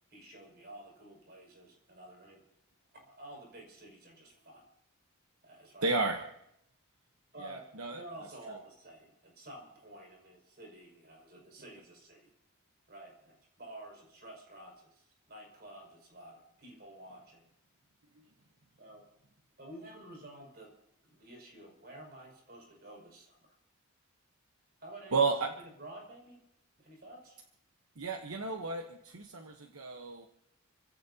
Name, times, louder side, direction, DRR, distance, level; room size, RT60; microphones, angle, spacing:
voice 1, 0.1-2.4 2.9-4.7 5.4-5.9 7.3-12.3 12.9-17.4 18.8-19.0 19.6-20.7 21.0-23.4 24.8-25.2 25.8-26.4 26.8-27.4, right 1 dB, 45° right, 0 dB, 6.0 m, -51 dB
voice 2, 5.8-6.3 7.4-8.0 8.5-8.6 18.1-18.3 25.1-25.6 27.9-30.3, right 4 dB, 75° right, 4 dB, 1.1 m, -33 dB
29.5 x 16.0 x 2.8 m, 0.79 s
head